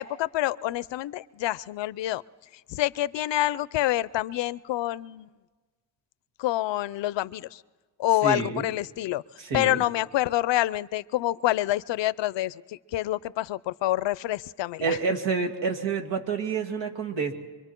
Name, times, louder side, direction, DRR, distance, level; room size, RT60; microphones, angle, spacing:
voice 1, 0.0-2.2 2.7-5.3 6.4-7.6 8.0-9.2 9.5-15.0, left 15 dB, 90° left, 19 dB, 0.6 m, -27 dB
voice 2, 8.2-8.7 9.4-9.8 14.8-17.3, right 5 dB, 90° right, 3 dB, 2.3 m, -28 dB
25.0 x 23.5 x 4.5 m, 1.3 s
cardioid pair, 85°, 43 cm